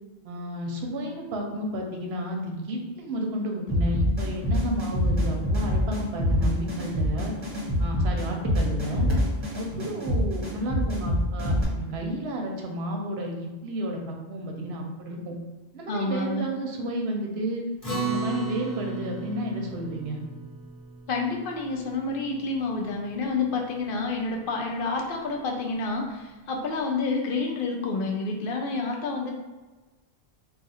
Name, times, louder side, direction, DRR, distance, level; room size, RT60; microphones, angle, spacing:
voice 1, 0.2-7.3 7.8-9.1 9.5-15.4 15.7-17.6 18.0-20.2, right 1 dB, 80° right, 1 dB, 0.9 m, -32 dB
sound 1, 3.7-11.6, left 1 dB, 30° right, 0.9 m, -25 dB
voice 2, 15.9-16.5 21.1-29.3, left 3 dB, 65° left, 1 dB, 0.7 m, -29 dB
Acoustic guitar, 17.8-22.5, right 4 dB, 35° left, 1.1 m, -35 dB
2.4 x 2.4 x 4.0 m, 1.2 s
omnidirectional pair, 1.1 m